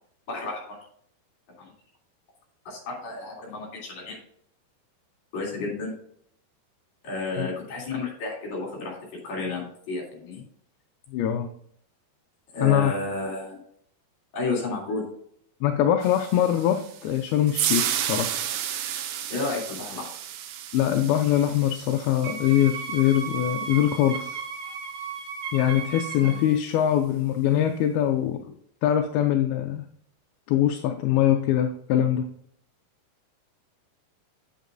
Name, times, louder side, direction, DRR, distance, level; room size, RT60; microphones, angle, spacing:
voice 1, 0.3-0.8 1.6-1.7 2.7-4.2 5.3-5.9 7.0-9.0 9.2-10.4 12.5-13.6 14.3-15.0 19.3-20.1 26.2-26.4, left 3 dB, 45° left, -2 dB, 4.1 m, -32 dB
voice 2, 11.1-11.5 12.6-12.9 15.6-18.4 20.7-24.4 25.5-28.5 28.8-29.8 30.5-32.3, left 11 dB, 80° left, 5 dB, 2.3 m, -23 dB
sound 1, 16.0-24.3, right 11 dB, 90° right, 1.9 m, -33 dB
Wind instrument woodwind instrument, 22.2-26.5, right 6 dB, 55° right, 2.3 m, -35 dB
8.9 x 8.2 x 2.6 m, 0.65 s
omnidirectional pair, 4.7 m